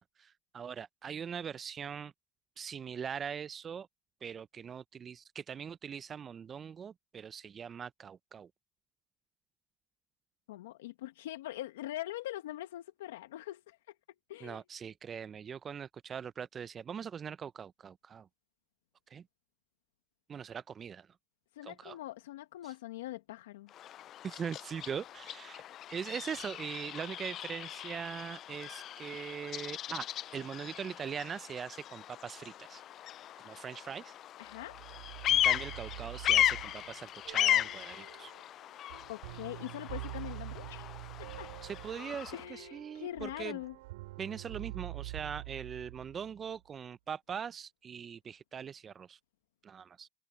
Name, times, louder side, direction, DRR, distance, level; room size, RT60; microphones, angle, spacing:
voice 1, 0.2-2.1 2.6-3.9 4.2-8.5 14.4-18.3 19.1-19.3 20.3-21.1 21.6-22.0 22.6-22.7 24.2-25.6 25.9-30.0 30.3-32.8 33.4-34.1 35.3-38.3 41.6-43.6 44.2-49.2 49.6-50.1, right 7 dB, 35° right, 0.6 m, -41 dB
voice 2, 10.5-13.8 14.3-14.6 21.5-23.7 34.4-34.8 39.1-40.9 41.2-41.5 42.3-43.7, left 14 dB, 85° left, 1.5 m, -42 dB
Bird vocalization bird call bird song, 23.7-42.4, left 12 dB, 50° left, 0.4 m, -36 dB
sound 1, 34.5-46.6, right 19 dB, 80° right, 4.9 m, -46 dB
hypercardioid pair, 80°, 0 cm